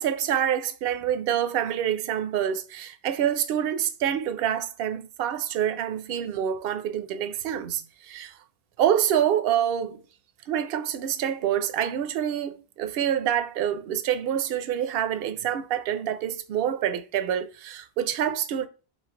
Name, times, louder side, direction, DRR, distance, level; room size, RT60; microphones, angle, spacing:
voice 1, 0.0-8.4 8.8-10.0 10.5-18.7, right 10 dB, 70° right, 0.7 m, -27 dB
3.7 x 3.2 x 3.7 m
omnidirectional pair, 1.1 m